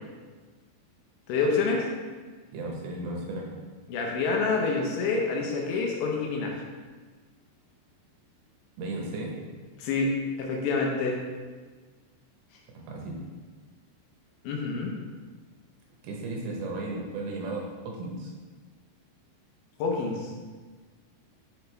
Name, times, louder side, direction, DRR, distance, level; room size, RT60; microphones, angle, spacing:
voice 1, 1.3-1.9 3.9-6.5 9.8-11.2 14.4-14.9 19.8-20.3, left 4 dB, 80° left, 0 dB, 3.0 m, -27 dB
voice 2, 2.5-3.5 8.8-9.4 12.7-13.2 16.0-18.3, right 2 dB, 75° right, -1 dB, 3.1 m, -35 dB
6.8 x 6.4 x 3.3 m, 1.4 s
omnidirectional pair, 5.4 m